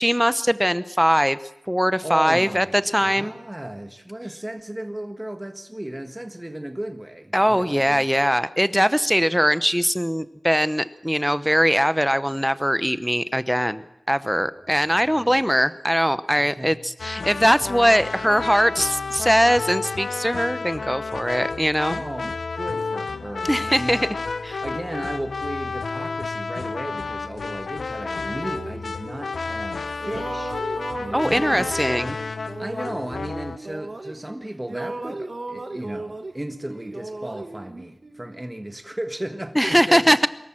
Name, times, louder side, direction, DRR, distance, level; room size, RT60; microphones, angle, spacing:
voice 1, 0.0-1.4 1.7-3.3 7.3-22.0 23.5-24.1 24.4-24.6 31.1-32.1 39.6-40.3, equal, ahead, 14 dB, 0.8 m, -21 dB
voice 2, 2.0-8.1 14.7-15.5 16.4-16.8 21.9-24.1 24.6-30.6 31.0-40.3, right 1 dB, 15° right, 5 dB, 1.5 m, -35 dB
sound 1, 17.0-33.6, left 4 dB, 85° left, 0.7 m, -31 dB
sound 2, 28.3-29.7 30.0-34.4 34.7-38.5, right 2 dB, 45° right, 1.9 m, -36 dB
23.0 x 14.0 x 8.8 m, 0.82 s
wide cardioid pair, 60°, 0 cm